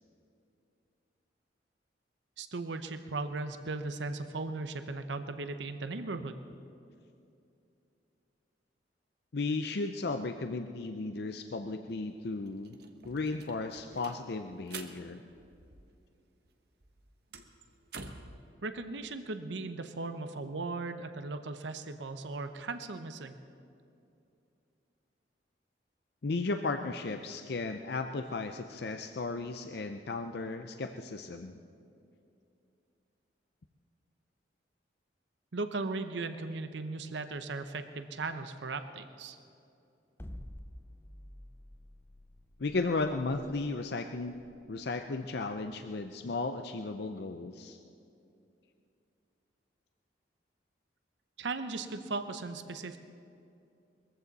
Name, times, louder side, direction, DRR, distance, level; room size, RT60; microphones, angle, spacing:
voice 1, 2.4-6.4 18.6-23.3 35.5-39.4 51.4-53.0, right 3 dB, 80° right, 9 dB, 0.7 m, -37 dB
voice 2, 9.3-12.8 13.0-15.2 26.2-31.5 42.6-44.4 44.7-47.8, left 3 dB, 60° left, 7 dB, 0.6 m, -35 dB
sound 1, 11.9-12.0 12.3-16.2 16.5-18.4, right 4 dB, 60° right, 1.1 m, -49 dB
sound 2, 40.2-46.4, left 1 dB, 15° left, 0.5 m, -50 dB
21.5 x 14.5 x 4.1 m, 2.6 s
head